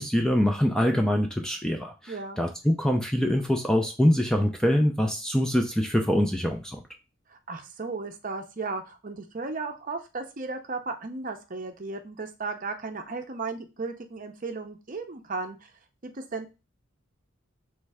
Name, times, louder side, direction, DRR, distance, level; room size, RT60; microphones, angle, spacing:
voice 1, 0.0-6.8, equal, 5° left, 3 dB, 0.4 m, -24 dB
voice 2, 2.1-2.4 7.3-15.7 16.0-16.5, right 3 dB, 40° right, 6 dB, 0.6 m, -35 dB
3.2 x 3.2 x 4.7 m, 0.29 s
head